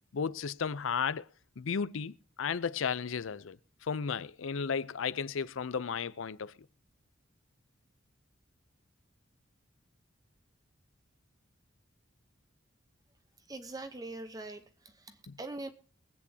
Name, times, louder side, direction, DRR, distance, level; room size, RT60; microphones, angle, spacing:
voice 1, 0.1-1.3 1.6-6.5 15.3-15.4, left 6 dB, 85° left, 0.5 m, -34 dB
voice 2, 13.5-15.7, right 2 dB, 20° right, 0.8 m, -43 dB
23.0 x 8.4 x 2.8 m
head